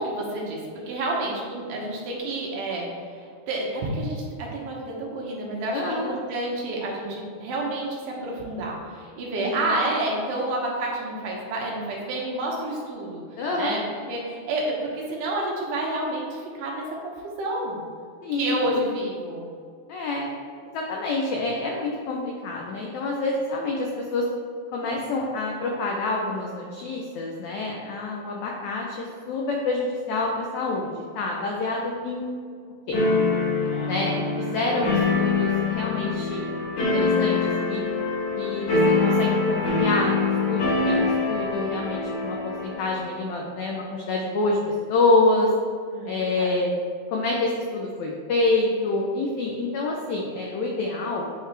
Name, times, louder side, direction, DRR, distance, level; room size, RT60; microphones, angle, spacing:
voice 1, 0.0-13.2 13.6-13.8 14.1-17.8 18.3-19.5 33.7-33.9 34.6-34.8 45.9-46.5, right 2 dB, 75° right, -3 dB, 2.5 m, -29 dB
voice 2, 5.7-6.1 9.4-9.7 13.4-13.8 18.2-18.8 19.9-20.3 20.7-24.3 24.7-32.2 32.9-33.0 33.8-36.4 36.8-37.4 37.7-37.8 38.4-42.4 42.6-44.6 44.9-45.5 46.1-46.7 47.1-51.3, left 2 dB, 85° left, -1 dB, 1.6 m, -27 dB
sound 1, 32.9-43.0, left 3 dB, 65° left, 2.8 m, -24 dB
9.4 x 3.2 x 3.2 m, 2.2 s
omnidirectional pair, 4.0 m